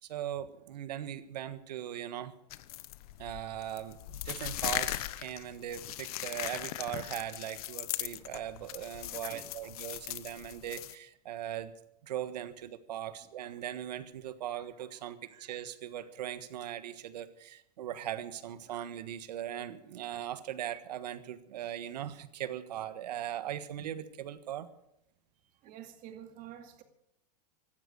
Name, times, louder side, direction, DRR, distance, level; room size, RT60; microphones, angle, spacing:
voice 1, 0.0-2.3 3.2-11.7 12.0-24.7, right 11 dB, 75° right, 1.5 m, -39 dB
sound 1, 2.5-11.0, left 16 dB, 60° left, 0.9 m, -39 dB
voice 2, 9.3-9.7 25.6-26.8, right 10 dB, 40° right, 2.3 m, -49 dB
16.5 x 12.5 x 6.6 m
hypercardioid pair, 120°, 21 cm